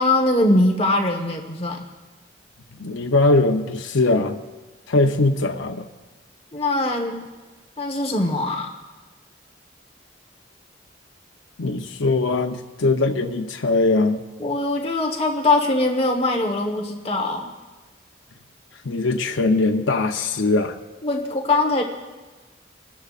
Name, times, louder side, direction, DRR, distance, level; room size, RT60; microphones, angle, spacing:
voice 1, 0.0-1.8 6.5-7.2 7.8-8.7 14.4-17.5 21.0-21.8, left 2 dB, 30° left, 2 dB, 1.3 m, -21 dB
voice 2, 2.8-4.4 4.9-5.8 11.6-14.2 18.8-20.8, left 2 dB, 85° left, 4 dB, 0.8 m, -21 dB
27.5 x 13.0 x 2.5 m, 1.3 s
head